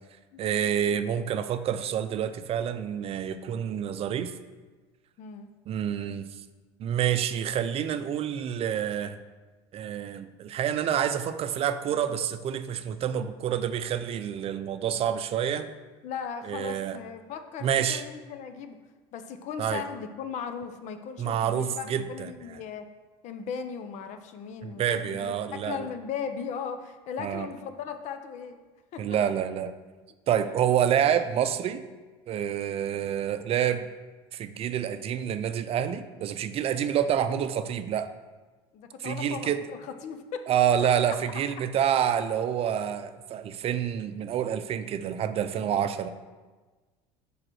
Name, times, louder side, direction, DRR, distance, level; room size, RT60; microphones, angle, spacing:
voice 1, 0.4-4.3 5.7-6.2 6.8-9.2 9.7-15.7 16.4-17.0 17.6-18.0 19.6-19.8 21.2-22.6 24.6-25.9 27.2-27.5 29.0-29.7 30.3-31.8 32.3-33.9 34.3-38.1 39.0-39.6 40.5-46.1, right 9 dB, 45° right, 11 dB, 0.5 m, -28 dB
voice 2, 5.2-5.5 16.0-18.8 19.1-22.9 23.2-28.6 28.9-29.1 30.4-30.5 38.7-40.5 41.1-41.2, left 7 dB, 60° left, 8 dB, 0.8 m, -37 dB
5.0 x 4.9 x 6.2 m, 1.3 s
hypercardioid pair, 80°, 14 cm